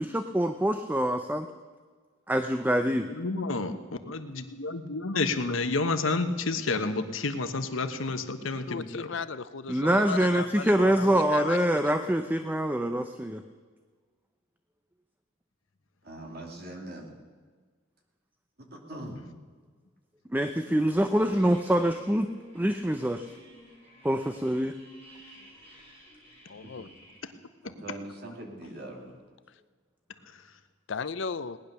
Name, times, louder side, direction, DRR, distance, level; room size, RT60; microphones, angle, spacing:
voice 1, 0.0-1.5 2.3-3.1 9.7-13.4 20.3-22.3 22.5-23.3 24.0-24.8, right 1 dB, 10° right, 8 dB, 0.5 m, -25 dB
voice 2, 3.1-3.8 4.0-9.1 27.2-27.3, left 3 dB, 85° left, 9 dB, 1.1 m, -30 dB
voice 3, 8.7-12.1 26.5-26.9 30.9-31.6, left 5 dB, 65° left, 15 dB, 0.6 m, -36 dB
voice 4, 16.0-17.1 18.7-19.3 26.6-26.9 27.6-29.1, right 1 dB, 50° right, 1 dB, 2.6 m, -42 dB
sound 1, 21.2-27.2, right 1 dB, 30° right, 4.9 m, -53 dB
18.5 x 10.5 x 6.7 m, 1.5 s
head